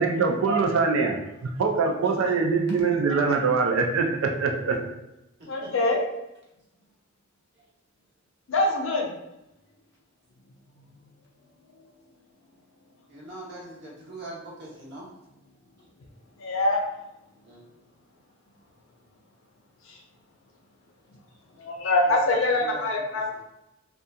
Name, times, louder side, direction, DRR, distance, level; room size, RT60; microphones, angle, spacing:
voice 1, 0.0-4.8, right 4 dB, 75° right, 3 dB, 0.4 m, -23 dB
voice 2, 5.5-6.1 8.5-9.1 13.8-13.9 16.4-16.8 21.6-23.4, left 2 dB, 70° left, 2 dB, 0.5 m, -24 dB
voice 3, 13.1-15.0 17.5-17.6 22.6-22.8, right 2 dB, 55° right, -4 dB, 0.8 m, -42 dB
2.7 x 2.3 x 2.2 m, 0.89 s
head